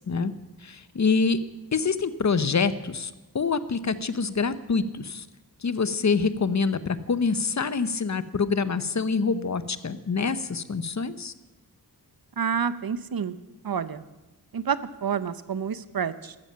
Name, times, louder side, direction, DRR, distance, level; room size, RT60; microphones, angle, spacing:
voice 1, 0.6-1.4 1.7-5.3 5.6-11.3, left 5 dB, 50° left, 14 dB, 0.9 m, -26 dB
voice 2, 12.4-13.3 13.6-14.0 14.5-16.4, right 7 dB, 70° right, 15 dB, 0.8 m, -28 dB
15.0 x 13.0 x 5.7 m, 1.1 s
wide cardioid pair, 85°, 37 cm